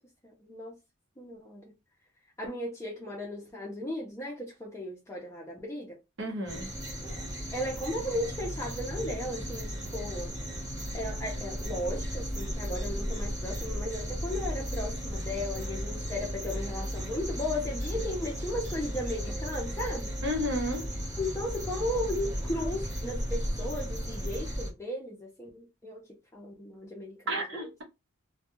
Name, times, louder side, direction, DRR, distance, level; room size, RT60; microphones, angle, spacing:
voice 1, 0.2-0.8 1.2-1.7 2.4-6.0 7.5-10.3 10.9-20.1 21.2-26.0 26.3-27.6, left 1 dB, 15° left, 0.5 m, -36 dB
voice 2, 6.2-6.7 20.2-20.9 27.3-27.8, equal, 60° right, 0.9 m, -32 dB
sound 1, 6.5-24.7, equal, 20° right, 1.0 m, -35 dB
2.2 x 2.1 x 3.0 m
head